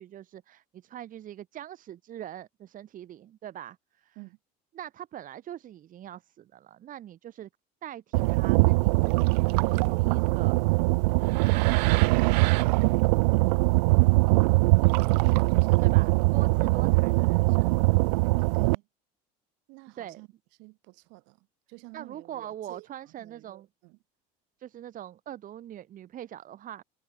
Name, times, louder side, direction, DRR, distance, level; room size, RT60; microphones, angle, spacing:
voice 1, 0.0-4.2 4.7-7.5 7.8-10.8 11.4-12.4 15.8-17.7 20.0-20.2 21.9-23.7 24.6-26.8, right 11 dB, 40° right, 2.4 m, -43 dB
sound 1, 8.1-18.8, right 25 dB, 85° right, 0.7 m, -22 dB
voice 2, 15.0-16.2 18.4-18.9 19.7-20.3 20.6-22.9 23.2-24.0, right 27 dB, 70° right, 5.9 m, -49 dB
supercardioid pair, 115°, 20 cm